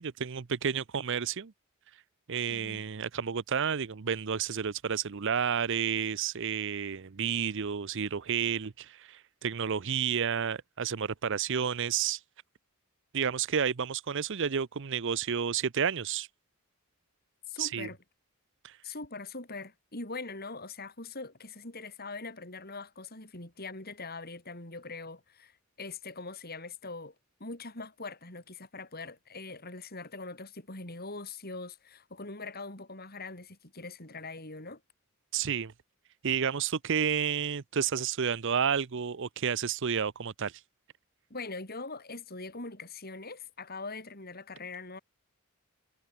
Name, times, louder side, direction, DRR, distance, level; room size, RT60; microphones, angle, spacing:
voice 1, 0.0-1.5 1.9-2.0 2.3-12.2 13.1-16.3 17.6-17.9 18.6-18.8 35.3-35.7 36.2-40.6, right 7 dB, 60° right, 0.6 m, -31 dB
voice 2, 2.5-2.8 17.5-18.0 18.8-27.1 27.4-34.8 41.3-45.0, left 3 dB, 45° left, 6.0 m, -42 dB
head